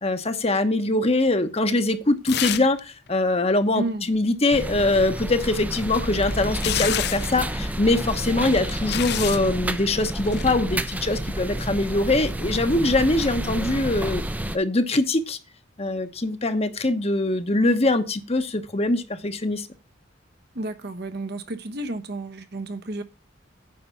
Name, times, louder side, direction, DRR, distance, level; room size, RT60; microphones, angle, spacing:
voice 1, 0.0-14.2 14.5-15.4 15.8-19.7, left 2 dB, 35° left, 1.1 m, -23 dB
sound 1, 2.3-2.8 3.1-3.2 5.6-7.4 8.3-9.5 10.3-10.5, left 11 dB, 60° left, 0.6 m, -29 dB
voice 2, 3.7-4.1 20.5-23.0, right 2 dB, 60° right, 1.2 m, -31 dB
sound 2, 4.5-14.6, right 1 dB, 10° right, 0.7 m, -30 dB
9.5 x 5.7 x 6.9 m
head